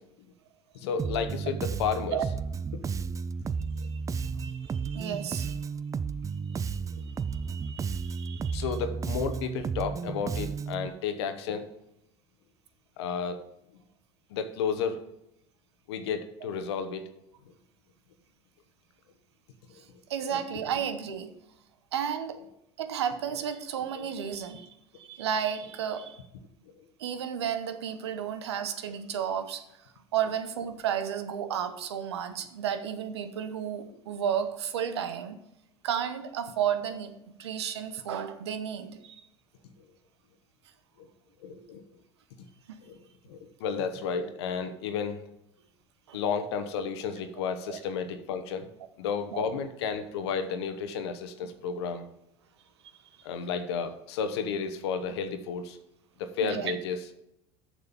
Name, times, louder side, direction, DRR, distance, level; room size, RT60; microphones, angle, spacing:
voice 1, 0.7-2.2 3.0-3.1 3.7-3.9 8.5-11.7 13.0-13.4 14.3-15.0 15.9-17.0 19.7-19.8 20.3-20.4 24.0-24.1 26.8-26.9 41.0-41.1 41.4-41.8 42.8-43.0 43.3-45.2 46.1-48.7 49.0-52.1 53.2-55.8 56.2-57.0, left 6 dB, 75° left, 8 dB, 1.0 m, -32 dB
Bass guitar, 1.0-10.9, right 5 dB, 25° right, 0.4 m, -33 dB
voice 2, 3.9-5.6 6.7-6.8 7.1-8.6 20.1-21.3 21.9-22.4 22.8-24.7 25.0-26.2 27.0-29.6 30.1-35.4 35.8-37.1 37.4-39.2 41.6-41.7 46.1-46.2 47.7-47.8 49.3-49.5 56.4-56.7, right 8 dB, 85° right, 10 dB, 1.0 m, -33 dB
7.1 x 6.5 x 7.0 m, 0.80 s
hypercardioid pair, 80°, 14 cm